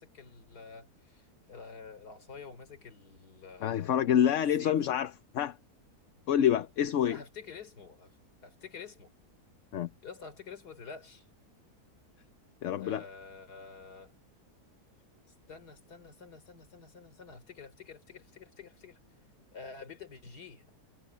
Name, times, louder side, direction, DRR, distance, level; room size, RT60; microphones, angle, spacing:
voice 1, 0.0-4.8 7.0-8.2 8.4-9.1 10.0-11.3 12.8-14.1 15.3-19.0 19.5-20.7, left 5 dB, 85° left, 3.8 m, -49 dB
voice 2, 3.6-5.6 6.3-7.2 9.7-9.9 12.6-13.0, left 9 dB, 60° left, 0.9 m, -27 dB
omnidirectional pair, 1.7 m